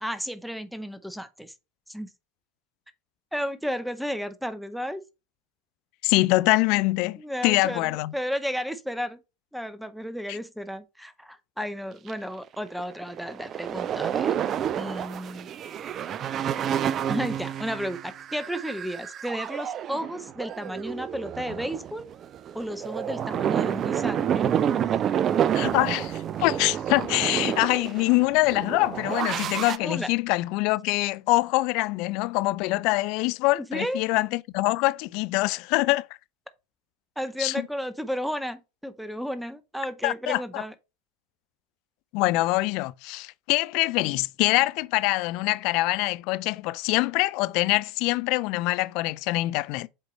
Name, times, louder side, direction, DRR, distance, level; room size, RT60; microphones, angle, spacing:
voice 1, 0.0-1.5 1.9-2.1 3.3-5.0 7.2-9.2 9.5-14.4 14.8-15.5 17.1-22.1 22.5-24.5 29.8-30.1 33.7-34.0 37.2-40.7, equal, ahead, 0.7 m, -33 dB
voice 2, 6.0-8.1 10.3-10.4 25.5-36.1 37.4-37.7 40.0-40.6 42.1-49.9, left 21 dB, 55° left, 0.3 m, -24 dB
sound 1, 12.1-12.2 12.5-29.8, right 9 dB, 35° right, 0.4 m, -29 dB
7.5 x 4.6 x 3.1 m
hypercardioid pair, 80°, 0 cm